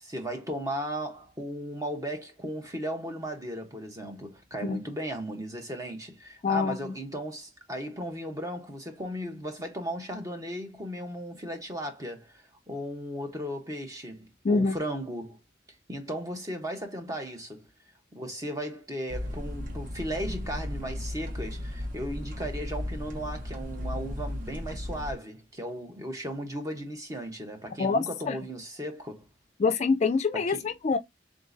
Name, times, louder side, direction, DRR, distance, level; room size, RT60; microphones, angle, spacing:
voice 1, 0.0-12.3 12.7-15.4 15.9-17.7 18.1-29.3 30.4-30.7, equal, 20° right, 0.9 m, -36 dB
voice 2, 6.4-6.9 14.4-14.8 27.8-28.4 29.6-31.0, left 4 dB, 35° left, 0.4 m, -25 dB
sound 1, 19.1-25.1, left 1 dB, 45° right, 0.9 m, -35 dB
3.7 x 3.6 x 2.5 m
head